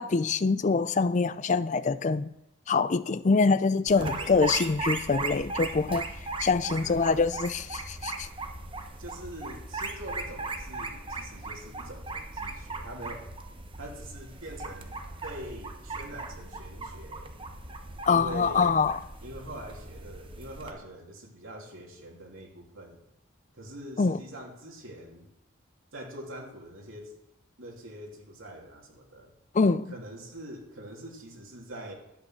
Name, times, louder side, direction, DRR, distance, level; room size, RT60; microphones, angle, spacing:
voice 1, 0.0-2.3 2.7-6.1 6.4-8.3 18.1-19.0 24.0-24.2 29.5-29.9, left 4 dB, 35° left, 0.4 m, -25 dB
sound 1, 3.9-20.7, right 3 dB, 25° right, 1.0 m, -38 dB
voice 2, 4.0-4.6 6.7-7.0 9.0-13.2 13.8-15.0 15.2-17.3 18.1-18.7 19.2-23.0 23.5-25.3 25.9-27.1 27.6-29.3 29.9-31.9, right 1 dB, 85° right, 3.0 m, -44 dB
11.5 x 8.7 x 6.3 m
head